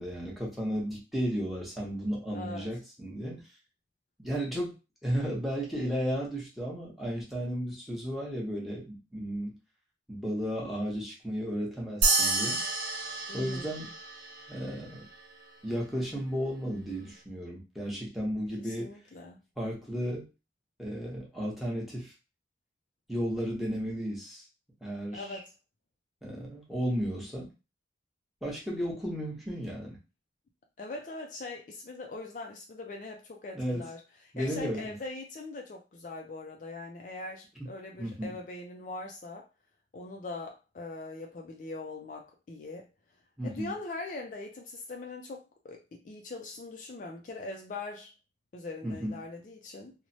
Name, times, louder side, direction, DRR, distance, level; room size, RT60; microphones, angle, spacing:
voice 1, 0.0-3.4 4.2-4.7 5.0-9.5 10.1-12.6 13.3-13.9 14.5-15.0 15.6-18.9 19.6-20.2 20.8-22.1 23.1-24.4 24.8-25.4 26.2-27.5 28.4-30.0 33.5-33.8 34.3-35.0 38.0-38.3 43.4-43.7 48.8-49.2, equal, ahead, -4 dB, 0.8 m, -34 dB
voice 2, 2.3-2.7 13.3-13.7 18.6-19.4 25.1-25.5 30.8-39.5 39.9-42.9 43.4-48.1 48.5-49.9, left 2 dB, 45° left, 2 dB, 0.3 m, -41 dB
sound 1, 12.0-14.8, right 3 dB, 85° right, 0.8 m, -29 dB
3.0 x 2.1 x 2.6 m, 0.28 s
head